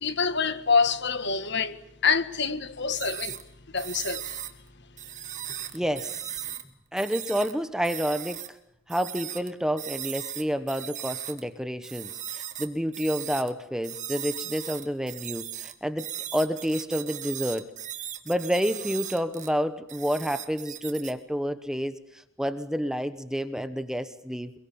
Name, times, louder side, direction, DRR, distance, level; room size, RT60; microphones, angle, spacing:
voice 1, 0.0-1.8 2.0-3.4 3.7-4.4, left 5 dB, 50° left, 1.7 m, -26 dB
sound 1, 2.9-3.4 3.8-4.5 5.0-6.6 7.0-7.5 7.8-8.5 8.9-9.5 9.8-11.4 11.8-13.5 13.8-19.5 19.9-21.1, right 11 dB, 35° right, 2.2 m, -37 dB
voice 2, 5.7-6.5 6.9-8.6 8.9-17.7 18.3-24.5, equal, 5° right, 1.0 m, -29 dB
26.5 x 23.0 x 8.6 m
head